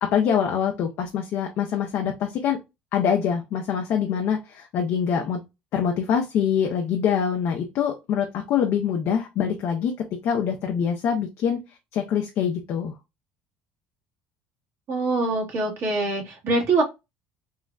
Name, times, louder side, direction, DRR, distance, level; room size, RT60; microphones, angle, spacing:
voice 1, 0.0-2.6 2.9-5.4 5.7-11.6 11.9-12.9, left 8 dB, 60° left, 3 dB, 0.6 m, -24 dB
voice 2, 14.9-16.8, right 3 dB, 60° right, -1 dB, 1.5 m, -24 dB
3.7 x 2.1 x 2.3 m, 0.23 s
supercardioid pair, 80°, 5 cm